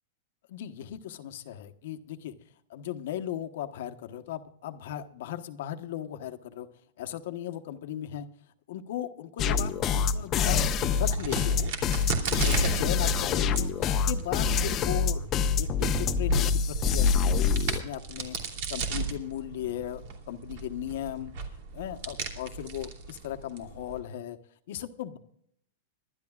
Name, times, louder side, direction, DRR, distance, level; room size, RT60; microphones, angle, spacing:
voice 1, 0.5-2.3 2.7-6.7 7.0-8.3 8.7-10.6 10.9-11.7 12.3-15.3 15.6-21.3 21.7-24.4 24.7-25.2, left 11 dB, 65° left, 8 dB, 1.1 m, -37 dB
sound 1, 9.4-17.8, left 6 dB, 25° left, 0.9 m, -25 dB
Crack, 10.7-24.0, right 4 dB, 55° right, 2.9 m, -35 dB
25.5 x 12.0 x 2.4 m, 0.68 s
supercardioid pair, 145°, 0 cm